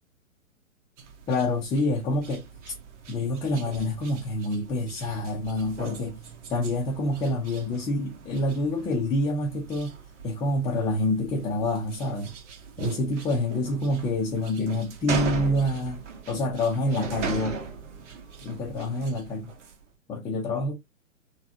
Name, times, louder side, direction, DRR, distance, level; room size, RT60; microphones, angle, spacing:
sound 1, 1.0-19.8, right 5 dB, 60° right, 1.3 m, -39 dB
voice 1, 1.3-2.7 3.1-6.2 6.5-9.9 10.2-12.3 12.8-17.6 18.4-19.5 20.1-20.7, left 1 dB, 10° left, 0.6 m, -27 dB
3.9 x 2.3 x 2.8 m
hypercardioid pair, 125°, 41 cm